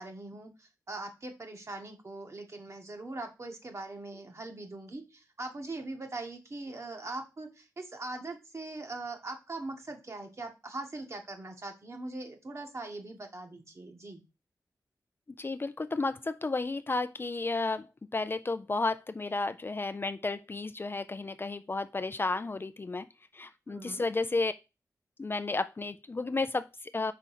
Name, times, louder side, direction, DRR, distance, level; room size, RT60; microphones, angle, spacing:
voice 1, 0.0-14.2 23.7-24.1, right 2 dB, 45° right, 1.5 m, -41 dB
voice 2, 15.4-17.9 18.1-23.1 23.3-24.5 25.2-27.1, left 3 dB, 35° left, 0.4 m, -32 dB
5.1 x 3.7 x 5.7 m
wide cardioid pair, 70°, 7 cm